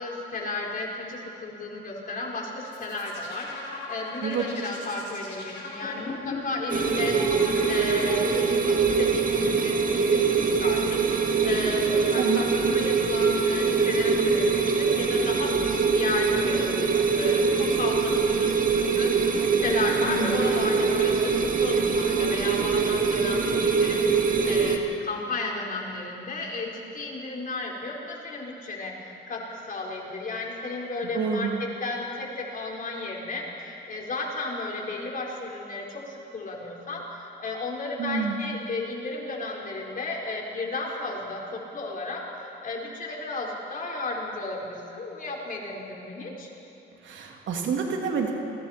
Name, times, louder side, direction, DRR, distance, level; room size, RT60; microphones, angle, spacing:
voice 1, 0.0-7.2 7.6-10.8 11.1-46.5, left 2 dB, 45° left, -2 dB, 4.6 m, -34 dB
sound 1, 2.6-8.8, left 3 dB, 65° left, 7.0 m, -38 dB
sound 2, 6.7-24.8, right 5 dB, 45° right, 2.1 m, -23 dB
voice 2, 12.2-12.5 20.1-20.4 31.1-31.6 38.0-38.4 47.0-48.3, right 6 dB, 70° right, 1 dB, 2.9 m, -28 dB
27.5 x 22.0 x 4.5 m, 2.8 s
cardioid pair, 90°, 20 cm